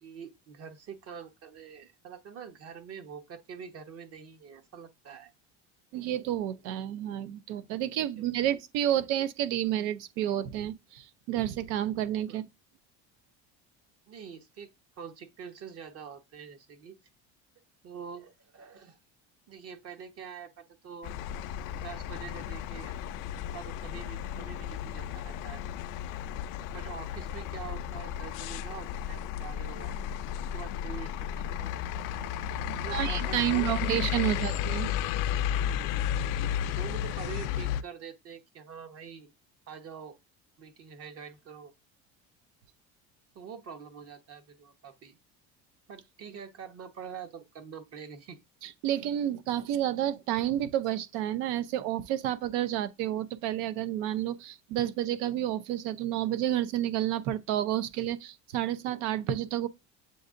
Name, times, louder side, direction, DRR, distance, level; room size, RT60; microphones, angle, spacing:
voice 1, 0.0-5.3 12.3-12.4 14.1-17.0 17.8-19.0 19.5-21.1 21.6-22.9 23.3-25.6 26.7-30.0 30.5-31.8 32.7-33.9 34.2-34.5 36.8-39.3 39.7-40.1 40.6-41.7 43.3-45.2 45.9-48.4, right 7 dB, 45° right, 1.1 m, -45 dB
voice 2, 5.9-12.5 32.9-34.9 48.6-59.7, right 12 dB, 90° right, 0.7 m, -30 dB
sound 1, 21.0-37.8, left 10 dB, 70° left, 0.5 m, -33 dB
7.8 x 2.7 x 2.5 m
cardioid pair, 120°, 32 cm